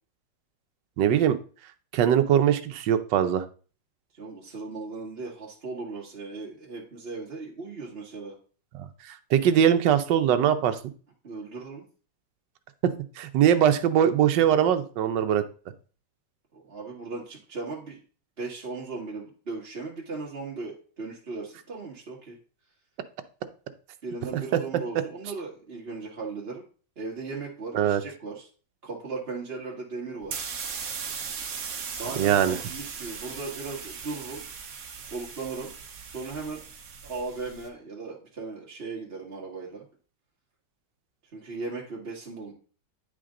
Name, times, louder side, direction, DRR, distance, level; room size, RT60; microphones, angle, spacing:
voice 1, 1.0-1.4 1.9-3.4 8.7-10.8 12.8-15.4 27.7-28.0 32.2-32.6, right 9 dB, 80° right, 9 dB, 1.4 m, -22 dB
voice 2, 4.1-8.4 11.2-11.9 16.5-18.0 18.4-22.4 24.0-26.6 26.9-28.5 28.8-30.4 32.0-34.5 35.1-35.7 36.1-36.7 37.0-39.8 41.3-42.5, right 3 dB, 35° right, -3 dB, 1.7 m, -37 dB
sound 1, 30.2-37.7, right 6 dB, 55° right, 1.4 m, -38 dB
9.4 x 5.0 x 3.7 m, 0.39 s
omnidirectional pair, 1.9 m